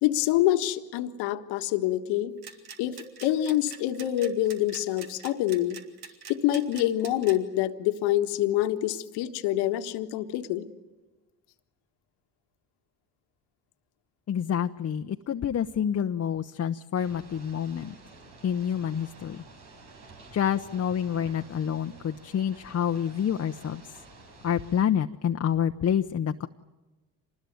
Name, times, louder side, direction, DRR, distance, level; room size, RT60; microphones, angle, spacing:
voice 1, 0.0-2.3 2.8-5.8 6.3-10.7, left 13 dB, 80° left, 9 dB, 1.6 m, -26 dB
sound 1, 2.4-7.3, right 6 dB, 65° right, 3.1 m, -44 dB
voice 2, 14.3-17.9 18.4-19.4 20.3-23.8 24.4-26.5, left 9 dB, 40° left, 7 dB, 0.9 m, -28 dB
Ocean / Boat Water vehicle, 17.0-24.8, right 3 dB, 80° right, 6.2 m, -50 dB
26.0 x 20.5 x 9.4 m, 1.2 s
supercardioid pair, 70°, 40 cm